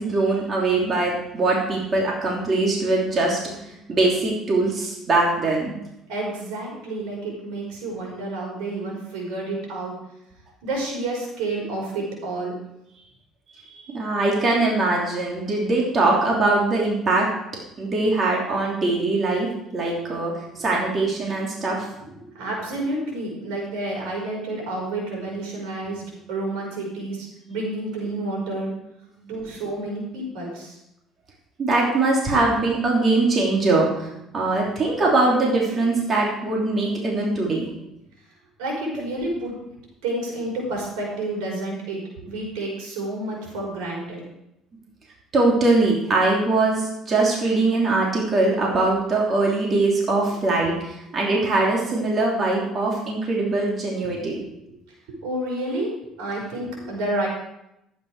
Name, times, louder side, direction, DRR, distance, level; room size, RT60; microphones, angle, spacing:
voice 1, 0.0-5.7 13.5-17.3 17.8-19.5 19.7-20.3 20.6-21.8 31.6-37.7 45.3-54.4, right 2 dB, 40° right, -2 dB, 3.0 m, -22 dB
voice 2, 6.1-10.0 10.6-12.5 20.5-20.6 22.0-28.7 29.3-30.8 38.6-39.5 40.0-44.2 54.0-54.1 54.7-54.8 55.1-57.3, right 2 dB, 90° right, -2 dB, 5.2 m, -30 dB
12.0 x 9.4 x 4.8 m, 0.83 s
cardioid pair, 105°, 0 cm